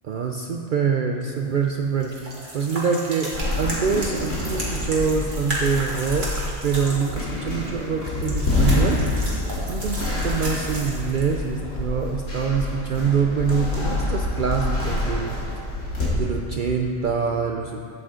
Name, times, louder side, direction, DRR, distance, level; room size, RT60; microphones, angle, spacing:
voice 1, 0.0-3.3 3.6-15.4 16.1-17.8, right 5 dB, 85° right, 3 dB, 0.4 m, -25 dB
sound 1, 1.3-11.6, right 1 dB, 40° right, 2.1 m, -34 dB
sound 2, 3.3-16.1, left 2 dB, 65° left, 2.5 m, -27 dB
12.5 x 8.0 x 3.8 m, 2.7 s
omnidirectional pair, 1.4 m